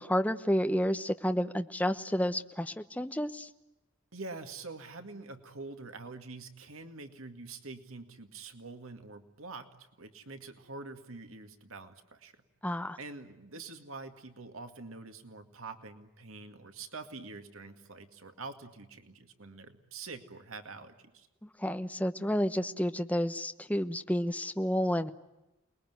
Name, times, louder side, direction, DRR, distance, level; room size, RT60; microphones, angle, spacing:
voice 1, 0.0-3.5 12.6-13.0 21.6-25.1, equal, 5° left, 8 dB, 1.0 m, -30 dB
voice 2, 4.1-12.4 13.0-21.3, right 3 dB, 75° right, 7 dB, 2.1 m, -46 dB
29.0 x 21.0 x 9.4 m, 0.97 s
head